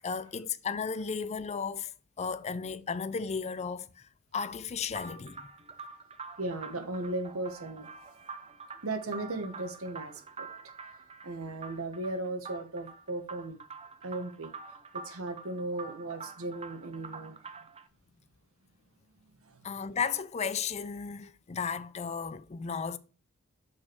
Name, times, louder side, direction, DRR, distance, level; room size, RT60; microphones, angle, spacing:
voice 1, 0.0-5.5 19.6-23.0, left 6 dB, 30° left, 0.4 m, -34 dB
sound 1, 4.9-17.9, right 4 dB, 30° right, 0.7 m, -46 dB
voice 2, 6.4-7.9 8.8-10.5 11.2-13.6 14.0-14.5 14.9-17.4 19.4-19.7, right 2 dB, 70° right, 1.3 m, -36 dB
5.8 x 4.4 x 4.6 m
head